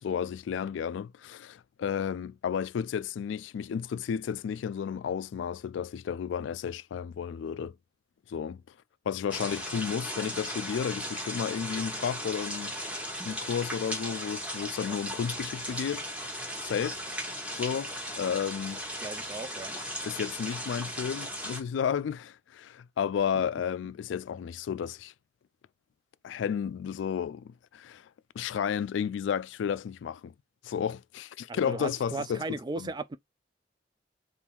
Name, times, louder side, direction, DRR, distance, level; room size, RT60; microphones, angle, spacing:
voice 1, 0.0-7.8 8.3-8.6 9.1-16.1 16.6-17.0 17.5-18.8 20.1-25.1 26.2-28.1 28.4-30.3 30.6-32.9, left 7 dB, 70° left, 0.3 m, -32 dB
sound 1, 9.3-21.6, equal, 5° right, 1.1 m, -37 dB
voice 2, 19.0-19.8 31.5-33.2, right 3 dB, 25° right, 0.3 m, -36 dB
3.6 x 2.5 x 4.3 m
head